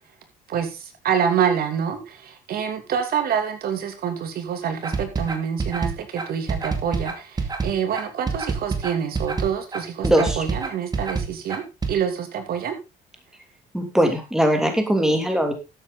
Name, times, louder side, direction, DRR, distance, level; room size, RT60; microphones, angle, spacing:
voice 1, 0.5-11.6 11.9-12.7, right 8 dB, 65° right, 7 dB, 2.9 m, -26 dB
sound 1, 4.8-11.9, right 4 dB, 25° right, 2.3 m, -27 dB
voice 2, 10.0-10.4 13.7-15.5, equal, 5° right, 5 dB, 3.1 m, -20 dB
13.5 x 8.3 x 4.0 m, 0.27 s
cardioid pair, 110°, 17 cm